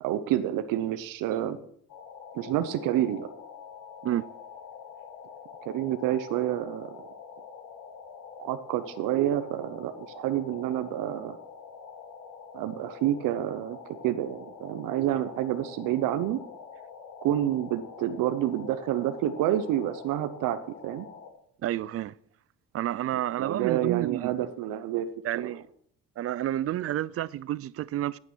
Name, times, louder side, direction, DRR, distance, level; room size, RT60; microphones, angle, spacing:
voice 1, 0.0-1.6 2.3-3.3 5.7-7.0 8.4-11.4 12.5-13.8 14.0-16.4 17.2-21.1 23.4-25.1 25.4-25.5, right 12 dB, 85° right, 0.9 m, -28 dB
sound 1, 1.9-21.3, left 6 dB, 90° left, 2.0 m, -46 dB
voice 2, 21.6-22.1 22.7-24.5 25.2-25.6 26.2-28.2, right 13 dB, 45° right, 0.4 m, -30 dB
9.9 x 8.8 x 6.1 m
cardioid pair, 115°, 32 cm